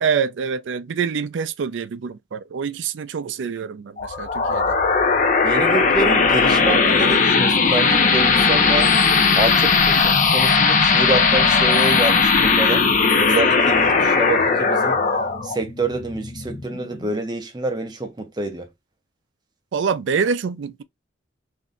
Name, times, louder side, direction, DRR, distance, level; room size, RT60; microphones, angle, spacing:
voice 1, 0.0-4.8 19.7-20.8, right 6 dB, 70° right, 0.4 m, -25 dB
sound 1, 4.0-17.1, left 4 dB, 40° left, 0.5 m, -18 dB
voice 2, 5.4-8.9 9.4-12.9 13.2-15.0 15.4-18.7, right 2 dB, 20° right, 0.5 m, -26 dB
2.6 x 2.1 x 3.6 m
head